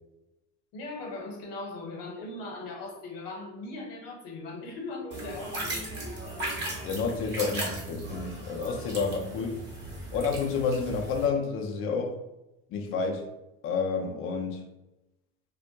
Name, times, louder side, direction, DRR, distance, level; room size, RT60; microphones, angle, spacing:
voice 1, 0.7-5.9, left 2 dB, 55° left, 0 dB, 0.9 m, -39 dB
sound 1, 5.1-11.3, right 1 dB, 25° right, 0.7 m, -37 dB
voice 2, 6.8-9.6 10.1-12.2 12.7-13.3 13.6-14.6, left 5 dB, 35° left, 3 dB, 0.4 m, -29 dB
2.2 x 2.1 x 2.7 m, 0.94 s
supercardioid pair, 110°, 41 cm